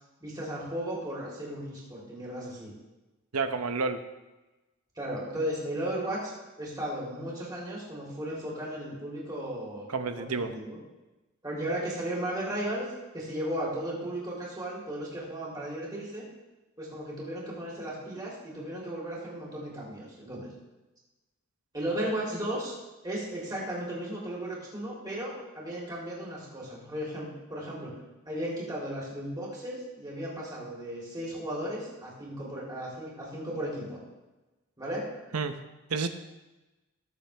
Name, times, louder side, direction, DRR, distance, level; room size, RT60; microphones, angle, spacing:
voice 1, 0.2-2.7 5.0-6.3 6.6-9.9 10.2-10.8 11.4-12.9 13.1-16.2 16.8-20.5 21.7-22.8 23.0-27.9 28.3-34.0 34.8-35.1, right 1 dB, 15° right, -5 dB, 3.7 m, -35 dB
voice 2, 3.3-4.0 9.9-10.5 35.3-35.5 35.9-36.1, right 4 dB, 85° right, 8 dB, 0.9 m, -29 dB
20.5 x 7.2 x 3.5 m, 1.1 s
head